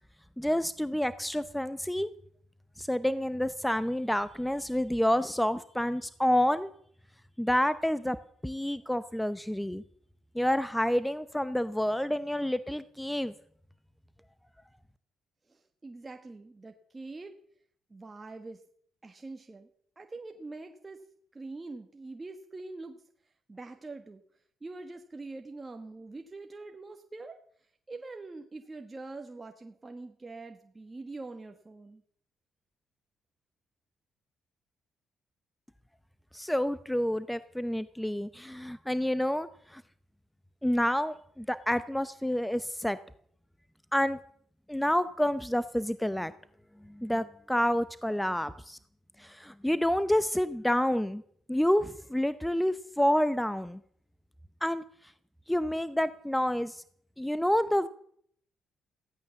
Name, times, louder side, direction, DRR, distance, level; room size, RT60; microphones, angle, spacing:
voice 1, 0.4-2.1 2.8-6.7 7.4-8.2 8.4-9.8 10.3-13.3 36.3-39.8 40.6-43.0 43.9-44.2 44.7-46.3 47.0-48.8 49.2-51.2 51.5-53.8 54.6-54.8 55.5-56.8 57.2-57.9, equal, 5° left, 14 dB, 0.7 m, -28 dB
voice 2, 15.5-17.3 17.9-18.6 19.0-19.7 20.0-21.0 21.3-23.0 23.5-24.2 24.6-27.4 27.9-32.0, right 3 dB, 25° right, 5 dB, 1.4 m, -44 dB
16.0 x 13.0 x 7.1 m, 0.63 s
cardioid pair, 90°, 0 cm